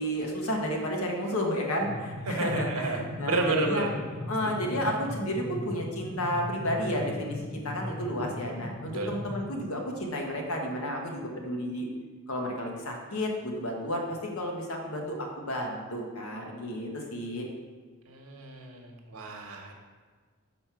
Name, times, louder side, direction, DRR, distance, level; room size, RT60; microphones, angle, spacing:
voice 1, 0.0-3.9 4.3-11.9 12.3-17.5, equal, 80° left, 1 dB, 1.2 m, -32 dB
sound 1, 1.8-9.4, left 1 dB, 55° left, 0.8 m, -38 dB
voice 2, 2.3-3.9 4.4-4.7 8.9-9.1 18.1-19.7, right 2 dB, 85° right, 2 dB, 1.1 m, -31 dB
6.0 x 4.3 x 5.7 m, 1.5 s
head